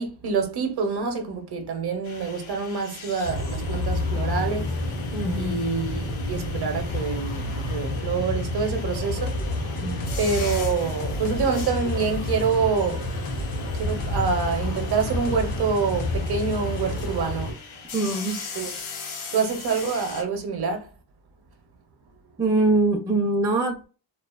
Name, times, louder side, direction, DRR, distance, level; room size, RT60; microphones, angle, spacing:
voice 1, 0.0-4.8 5.4-9.7 10.2-13.1 13.7-17.6 18.6-18.7 19.3-20.9, right 5 dB, 55° right, 0.6 m, -26 dB
sound 1, 2.0-20.2, left 5 dB, 90° left, 0.7 m, -41 dB
sound 2, 3.2-17.5, left 2 dB, 65° left, 0.9 m, -29 dB
voice 2, 5.1-5.6 9.8-10.1 17.9-18.4 22.4-23.9, right 2 dB, 10° right, 0.4 m, -23 dB
sound 3, 9.3-17.1, equal, 45° left, 0.5 m, -38 dB
2.4 x 2.3 x 2.3 m
wide cardioid pair, 105°, 48 cm